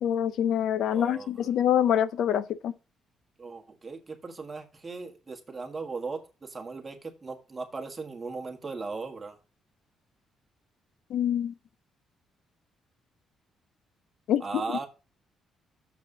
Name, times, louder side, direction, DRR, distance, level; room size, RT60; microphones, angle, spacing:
voice 1, 0.0-2.7 11.1-11.5 14.3-14.4, left 10 dB, 70° left, 0.5 m, -25 dB
voice 2, 0.9-1.4 3.4-9.4 14.4-14.9, right 4 dB, 20° right, 1.6 m, -38 dB
7.1 x 4.7 x 6.7 m
cardioid pair, 155°, 0 cm